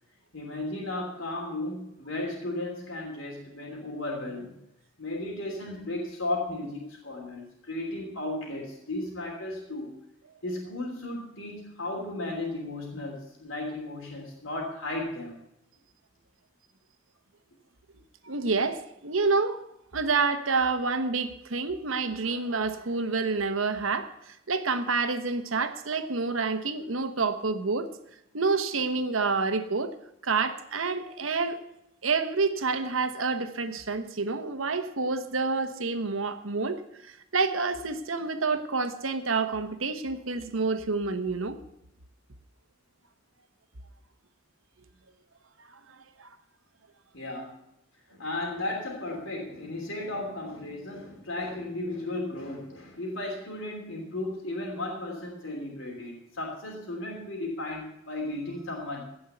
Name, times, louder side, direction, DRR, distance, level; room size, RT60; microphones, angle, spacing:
voice 1, 0.3-4.5 5.0-10.0 10.4-15.4 47.1-47.6 48.1-59.0, left 2 dB, 80° left, -1 dB, 3.1 m, -35 dB
voice 2, 18.2-19.6 19.9-27.9 28.3-29.9 30.2-31.6 32.0-41.6 46.0-46.3, right 4 dB, 90° right, 9 dB, 1.2 m, -28 dB
16.5 x 5.5 x 8.0 m, 0.83 s
head